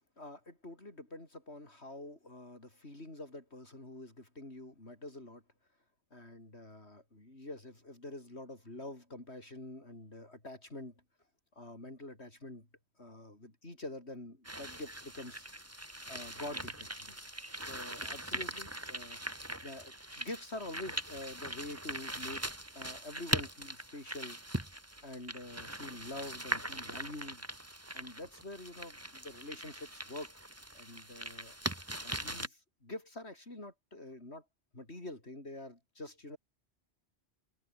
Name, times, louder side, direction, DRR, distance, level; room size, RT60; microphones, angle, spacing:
voice 1, 0.2-5.4 6.1-11.0 11.5-12.7 13.0-15.4 16.1-17.2 17.6-19.2 19.6-22.4 22.7-24.4 25.0-27.4 27.9-30.4 30.7-31.6 32.0-34.4 34.7-36.4, left 1 dB, 70° left, 6.6 m, -46 dB
sound 1, 14.4-32.5, right 1 dB, 15° right, 2.3 m, -41 dB
omnidirectional pair, 1.2 m